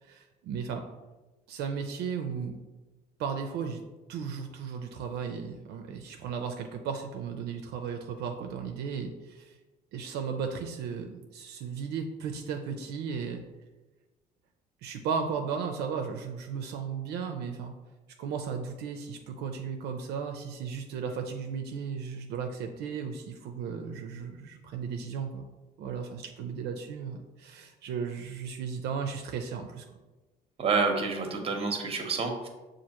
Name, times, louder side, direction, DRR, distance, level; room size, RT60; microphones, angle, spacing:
voice 1, 0.0-0.8 1.5-2.6 3.2-3.8 4.1-9.6 9.9-13.4 14.8-17.7 18.2-25.5 25.8-29.8, right 6 dB, 75° right, 4 dB, 0.4 m, -35 dB
voice 2, 30.6-32.5, right 4 dB, 35° right, 4 dB, 0.8 m, -28 dB
6.1 x 2.5 x 2.9 m, 1.1 s
cardioid pair, 110°, 17 cm